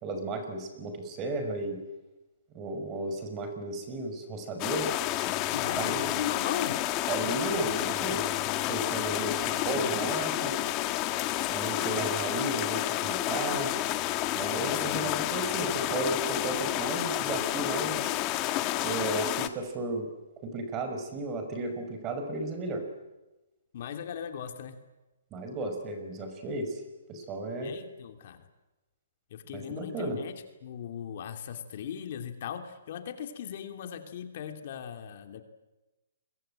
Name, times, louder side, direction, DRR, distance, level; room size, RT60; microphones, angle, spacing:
voice 1, 0.0-1.8 2.5-4.9 5.8-6.1 7.1-8.3 8.7-10.6 11.5-13.7 14.3-18.1 18.8-20.1 20.4-22.8 25.3-26.8 27.1-27.7 29.5-30.2, right 2 dB, 20° right, 7 dB, 5.7 m, -34 dB
sound 1, 4.6-19.5, left 15 dB, 25° left, 1.5 m, -30 dB
voice 2, 5.5-6.8 9.0-9.6 14.9-15.2 23.7-24.8 27.6-28.5 29.3-35.4, left 8 dB, 50° left, 7 dB, 2.7 m, -38 dB
29.0 x 23.0 x 9.0 m, 1.0 s
hypercardioid pair, 155°, 0 cm